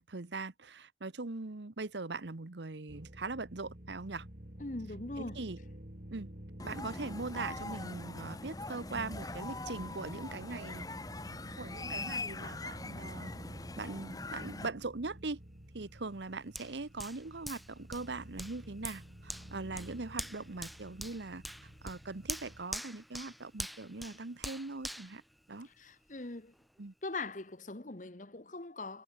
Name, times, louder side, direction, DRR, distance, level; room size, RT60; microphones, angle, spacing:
voice 1, 0.0-4.3 5.2-5.6 6.1-6.3 6.6-10.9 11.6-13.3 13.8-15.4 15.7-21.4 21.8-25.2 25.5-25.7 26.8-26.9, right 3 dB, 75° right, 1.1 m, -41 dB
sound 1, 2.9-22.7, equal, 50° right, 3.9 m, -51 dB
voice 2, 4.6-5.4 25.6-26.5 27.0-29.0, left 2 dB, 45° left, 1.2 m, -41 dB
sound 2, 6.6-14.7, left 2 dB, 20° left, 1.1 m, -42 dB
Hands, 16.5-26.1 26.5-26.7, equal, ahead, 1.6 m, -45 dB
head